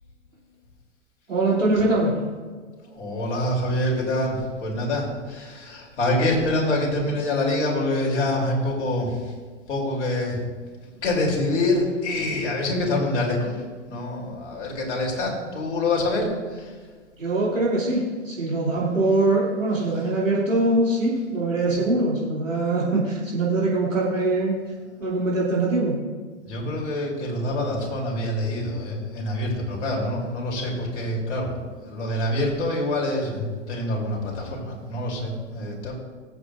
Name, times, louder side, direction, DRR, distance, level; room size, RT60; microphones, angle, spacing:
voice 1, 1.3-2.2 17.2-24.6 25.0-26.0, right 2 dB, 90° right, -6 dB, 2.9 m, -22 dB
voice 2, 2.9-9.2 9.7-10.4 11.0-13.6 13.9-16.7 21.8-21.9 26.4-35.9, left 1 dB, 65° left, -2 dB, 3.4 m, -26 dB
19.5 x 8.0 x 2.6 m, 1.5 s
figure-of-eight pair, 110°, 37 cm